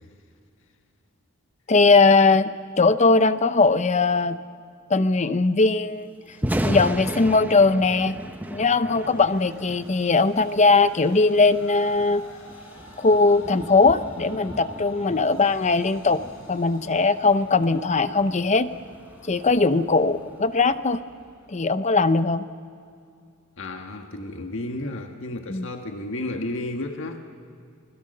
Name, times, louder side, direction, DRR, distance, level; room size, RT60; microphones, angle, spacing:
voice 1, 1.7-2.5 2.8-4.4 4.9-6.1 6.6-8.1 8.5-12.2 13.0-16.2 16.5-18.7 19.3-21.0 21.5-22.5 25.5-25.7, left 3 dB, 35° left, 12 dB, 0.8 m, -20 dB
Thunder, 6.3-20.4, equal, 10° right, 1.0 m, -35 dB
Train, 8.9-22.4, left 1 dB, 90° left, 5.3 m, -49 dB
voice 2, 23.6-27.2, left 2 dB, 65° left, 4 dB, 1.7 m, -32 dB
29.5 x 21.5 x 6.7 m, 2.4 s
head